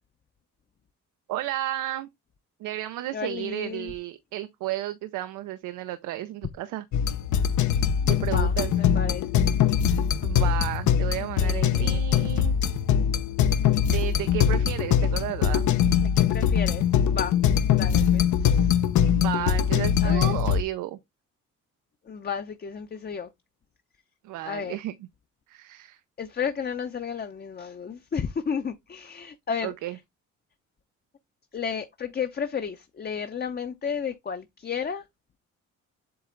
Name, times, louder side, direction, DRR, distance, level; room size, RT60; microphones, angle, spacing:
voice 1, 1.3-2.1 2.6-6.8 8.0-8.7 10.2-12.8 13.9-15.7 19.0-21.0 24.2-24.9 25.5-26.0 29.6-30.0, right 14 dB, 90° right, 0.6 m, -33 dB
voice 2, 3.1-3.9 8.0-9.5 11.2-12.0 16.0-17.4 17.7-18.8 20.0-20.3 22.1-23.3 24.4-24.8 26.2-29.7 31.5-35.0, left 6 dB, 30° left, 0.7 m, -33 dB
sound 1, 6.9-20.6, left 8 dB, 75° left, 1.0 m, -22 dB
7.8 x 3.2 x 3.8 m
cardioid pair, 90°, 30 cm